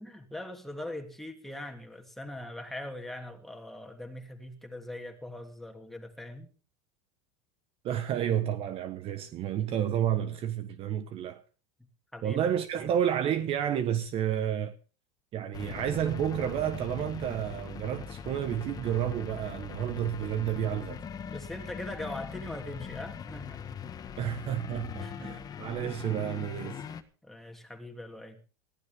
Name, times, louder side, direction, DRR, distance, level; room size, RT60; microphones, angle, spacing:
voice 1, 0.0-6.5 12.1-12.5 21.3-23.6 25.0-25.4 27.2-28.4, left 1 dB, ahead, 3.0 m, -41 dB
voice 2, 7.8-11.4 12.2-14.8 15.3-21.0 24.2-26.8, right 10 dB, 40° right, 1.3 m, -30 dB
sound 1, 15.5-27.0, left 7 dB, 25° left, 1.6 m, -41 dB
20.0 x 15.0 x 3.7 m
supercardioid pair, 135°, 15 cm